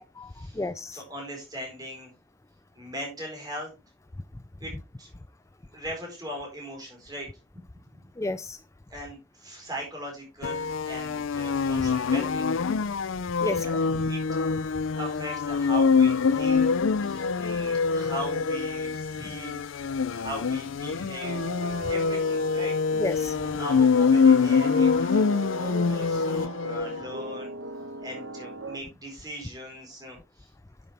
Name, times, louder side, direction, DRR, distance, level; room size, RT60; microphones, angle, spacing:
voice 1, 0.0-1.0 8.2-8.6 13.4-13.8 23.0-23.4, left 2 dB, 15° left, 13 dB, 0.4 m, -32 dB
voice 2, 0.9-2.1 2.7-3.7 4.6-4.7 5.0-5.1 5.7-7.3 8.9-12.5 13.4-14.2 14.9-19.6 20.1-21.5 21.8-23.0 23.6-27.5 28.0-30.5, equal, 20° right, -1 dB, 4.4 m, -39 dB
sound 1, 10.4-27.0, left 5 dB, 75° left, 0.5 m, -25 dB
sound 2, 21.2-28.8, right 1 dB, 75° right, 1.3 m, -39 dB
10.0 x 7.6 x 3.4 m, 0.26 s
head